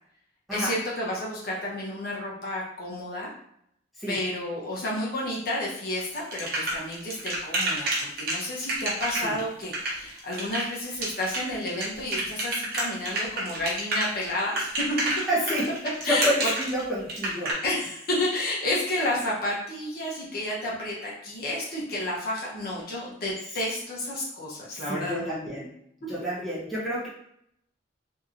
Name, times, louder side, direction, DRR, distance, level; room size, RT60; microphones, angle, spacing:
voice 1, 0.5-3.3 4.1-14.7 16.0-16.5 17.6-25.3, left 1 dB, 50° left, -5 dB, 0.8 m, -31 dB
sound 1, 6.0-17.5, right 2 dB, 50° right, 0.8 m, -29 dB
voice 2, 15.3-15.7 16.0-17.5 24.7-25.7 26.1-27.1, equal, ahead, -9 dB, 0.8 m, -29 dB
2.8 x 2.7 x 2.5 m, 0.72 s
head